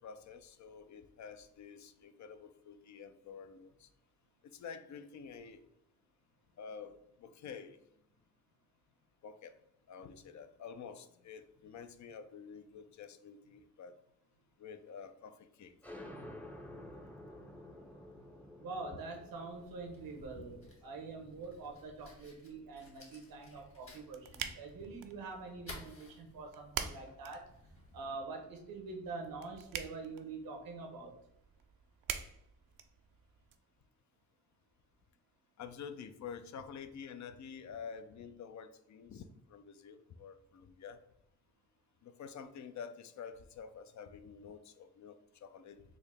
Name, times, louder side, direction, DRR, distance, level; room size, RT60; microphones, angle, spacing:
voice 1, 0.0-3.9 4.4-5.6 6.6-7.8 9.2-9.6 9.9-14.0 14.6-15.7 20.3-20.5 35.6-41.0 42.0-45.8, left 6 dB, 55° left, 10 dB, 0.4 m, -49 dB
sound 1, 15.8-23.1, left 1 dB, 5° left, 0.5 m, -52 dB
voice 2, 18.6-27.5 27.9-31.1, right 3 dB, 85° right, 3 dB, 0.9 m, -45 dB
Fire, 19.3-28.1, left 1 dB, 40° left, 1.4 m, -56 dB
sound 2, 23.6-33.6, right 8 dB, 70° right, 0.5 m, -47 dB
3.8 x 2.1 x 3.3 m, 0.78 s
cardioid pair, 55°, 34 cm